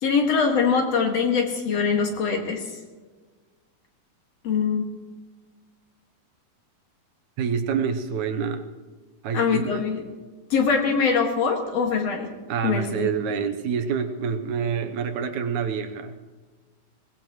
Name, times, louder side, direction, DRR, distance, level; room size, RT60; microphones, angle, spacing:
voice 1, 0.0-2.6 4.4-4.8 9.3-10.0 10.5-12.3 12.6-13.1, left 5 dB, 50° left, 2 dB, 2.7 m, -23 dB
voice 2, 7.4-8.7 9.2-9.8 12.5-16.2, right 6 dB, 70° right, 7 dB, 2.0 m, -27 dB
22.0 x 19.0 x 3.1 m, 1.4 s
omnidirectional pair, 4.0 m